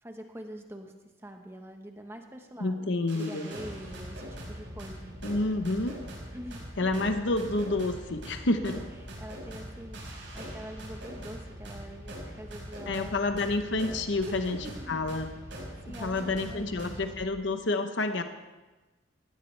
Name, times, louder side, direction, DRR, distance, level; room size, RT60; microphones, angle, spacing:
voice 1, 0.0-0.9 1.2-5.2 6.3-6.9 8.4-8.8 9.2-13.2 14.2-15.2 15.5-17.0, equal, 15° right, 4 dB, 1.1 m, -45 dB
voice 2, 2.6-3.5 5.2-6.0 6.8-8.8 12.9-14.6 14.9-15.3 15.9-18.2, left 2 dB, 70° left, 7 dB, 0.9 m, -29 dB
sound 1, 3.1-17.2, equal, 65° right, 5.5 m, -42 dB
19.5 x 16.0 x 3.3 m, 1.2 s
head